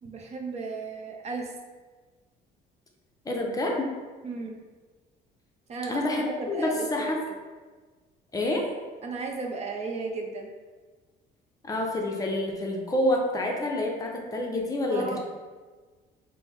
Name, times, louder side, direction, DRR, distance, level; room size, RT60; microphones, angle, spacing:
voice 1, 0.0-1.5 4.2-4.6 5.7-7.1 9.0-10.5 14.9-15.2, right 3 dB, 40° right, 1 dB, 0.5 m, -35 dB
voice 2, 3.2-3.9 5.9-7.2 8.3-8.7 11.6-15.2, left 1 dB, 20° left, 0 dB, 0.5 m, -28 dB
3.7 x 2.0 x 4.4 m, 1.4 s
cardioid pair, 120°, 17 cm